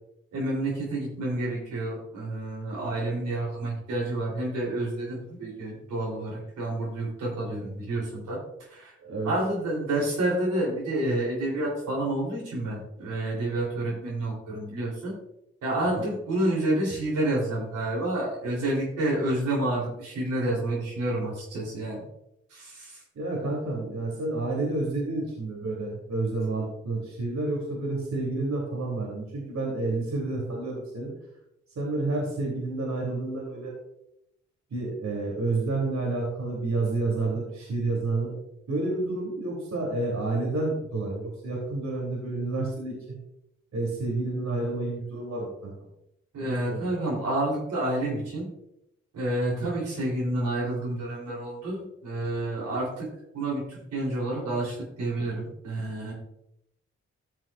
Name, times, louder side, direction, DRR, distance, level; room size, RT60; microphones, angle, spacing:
voice 1, 0.3-8.4 8.7-8.9 9.2-15.1 15.6-22.0 22.5-23.0 46.3-48.5 49.1-53.1 53.3-56.1, right 1 dB, 85° right, -4 dB, 3.5 m, -29 dB
voice 2, 9.0-9.3 23.1-31.1 31.7-33.7 34.7-38.3 38.7-42.9 43.7-45.7 46.4-46.9, right 2 dB, 70° right, -3 dB, 3.1 m, -29 dB
14.5 x 6.4 x 2.5 m, 0.81 s
supercardioid pair, 45°, 30 cm